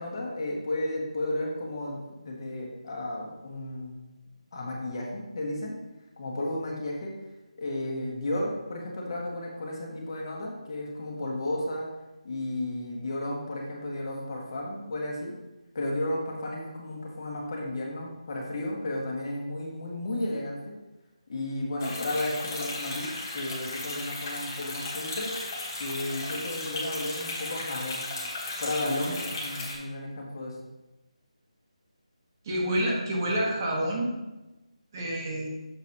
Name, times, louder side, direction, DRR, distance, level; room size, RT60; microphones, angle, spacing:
voice 1, 0.0-4.0 4.5-5.8 6.2-7.1 7.5-11.9 12.2-15.3 15.7-20.7 21.3-25.3 25.8-28.0 28.6-30.6, left 1 dB, 40° left, -2 dB, 1.5 m, -33 dB
sound 1, 21.8-29.8, left 2 dB, 25° left, 1.2 m, -36 dB
voice 2, 32.4-34.1 34.9-35.5, right 1 dB, 30° right, -2 dB, 1.3 m, -28 dB
7.0 x 6.3 x 2.8 m, 1.0 s
figure-of-eight pair, 165°, 4 cm